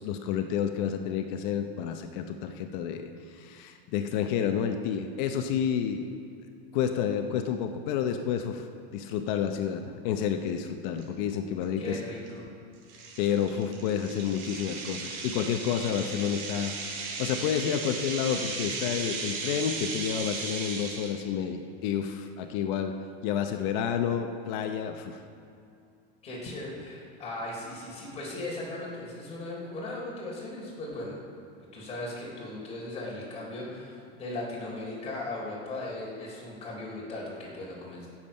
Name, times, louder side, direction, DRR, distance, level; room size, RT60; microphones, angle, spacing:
voice 1, 0.0-6.1 6.7-8.6 8.9-12.0 13.2-16.7 17.2-22.9 23.2-25.2, left 8 dB, 45° left, 6 dB, 0.8 m, -30 dB
sound 1, 11.0-11.1 11.6-11.8 12.3-12.4 12.9-21.2, right 4 dB, 55° right, 2.7 m, -36 dB
voice 2, 11.8-12.5 26.2-31.2 31.7-38.1, left 2 dB, 20° left, -4 dB, 3.6 m, -37 dB
16.5 x 7.4 x 5.4 m, 2.5 s
supercardioid pair, 160°, 32 cm